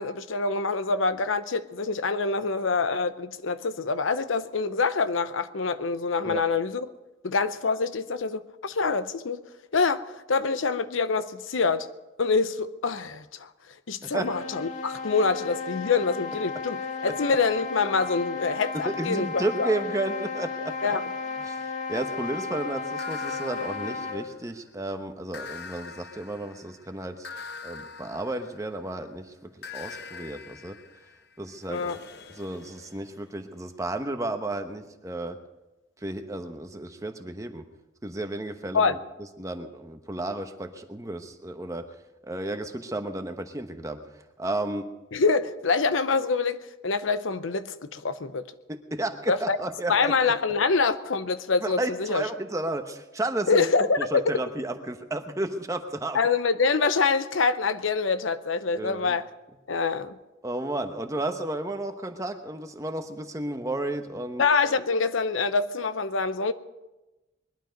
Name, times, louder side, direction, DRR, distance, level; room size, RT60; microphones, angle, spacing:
voice 1, 0.0-6.9 7.2-9.4 9.7-11.9 12.2-13.5 13.9-19.7 20.8-21.0 31.7-32.0 38.7-39.0 45.1-48.4 49.3-49.6 49.9-52.3 53.5-54.3 56.1-59.3 59.7-60.2 64.4-66.5, left 4 dB, 85° left, 0.7 m, -25 dB
sound 1, 14.0-24.3, left 4 dB, 40° left, 2.3 m, -34 dB
voice 2, 18.8-20.9 21.4-27.3 27.6-30.8 31.4-31.9 32.3-35.4 36.0-37.6 38.0-38.9 39.4-41.8 42.2-44.0 44.4-44.9 48.7-50.3 51.6-53.7 54.0-56.2 58.8-59.2 60.4-64.4, right 2 dB, 15° right, 0.9 m, -32 dB
sound 2, 23.0-24.7 25.3-29.0 29.6-33.3, left 5 dB, 55° left, 0.9 m, -44 dB
20.5 x 12.0 x 5.2 m
head